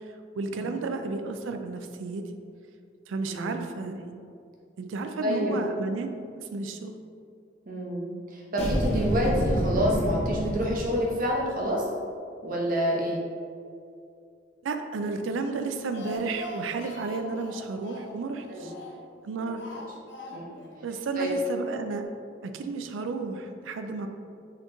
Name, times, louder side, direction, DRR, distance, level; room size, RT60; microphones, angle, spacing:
voice 1, 0.4-2.2 3.1-4.1 4.8-7.0 14.6-18.7 19.2-19.7 20.8-22.0 22.4-24.1, right 4 dB, 85° right, 7 dB, 0.4 m, -32 dB
voice 2, 3.3-3.6 5.2-5.5 7.7-11.9 12.4-13.2 18.5-18.7 20.3-20.6 21.2-21.3, equal, 45° right, -3 dB, 0.9 m, -28 dB
sound 1, 8.6-11.3, equal, 35° left, 0.8 m, -28 dB
Speech, 15.6-19.1 19.6-20.7 21.0-21.1 21.4-21.5, equal, 65° left, 0.5 m, -41 dB
4.3 x 3.0 x 3.8 m, 2.4 s
head